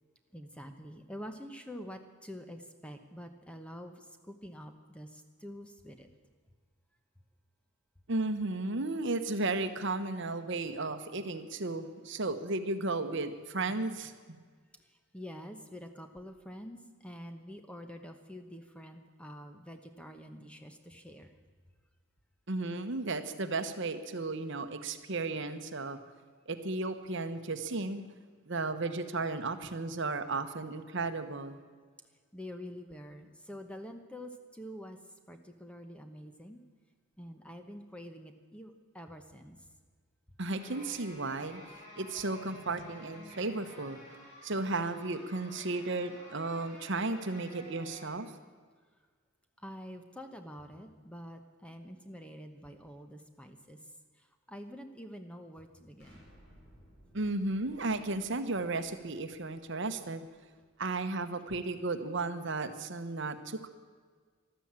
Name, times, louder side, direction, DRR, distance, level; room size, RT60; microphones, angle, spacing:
voice 1, 0.3-6.1 14.9-21.3 32.3-35.0 35.3-36.6 37.2-39.6 49.6-53.8 54.2-56.2, equal, 5° left, 6 dB, 0.9 m, -47 dB
voice 2, 8.1-14.4 22.5-26.0 26.5-28.0 28.5-31.6 40.4-41.6 42.0-44.0 44.4-48.3 57.1-60.3 60.8-63.7, right 3 dB, 55° right, 9 dB, 1.0 m, -34 dB
sound 1, 40.5-48.1, equal, 30° left, 5.4 m, -52 dB
Explosion, 56.0-60.8, equal, 55° left, 5.9 m, -61 dB
13.5 x 12.5 x 8.8 m, 1.5 s
head